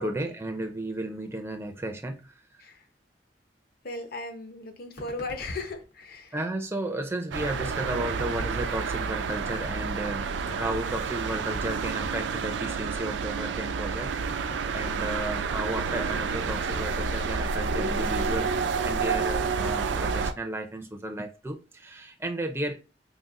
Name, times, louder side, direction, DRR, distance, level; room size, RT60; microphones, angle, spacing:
voice 1, 0.0-2.6 6.3-18.5 18.8-22.7, right 1 dB, 15° right, 0.4 m, -34 dB
voice 2, 3.8-6.3, left 2 dB, 55° left, 0.7 m, -36 dB
sound 1, 4.8-6.6 7.6-10.1 10.4-10.5 10.8-12.9 13.3-13.4 13.7-17.4, equal, 80° left, 1.4 m, -46 dB
sound 2, 7.3-20.3, right 5 dB, 85° right, 0.4 m, -29 dB
3.7 x 2.0 x 4.0 m
head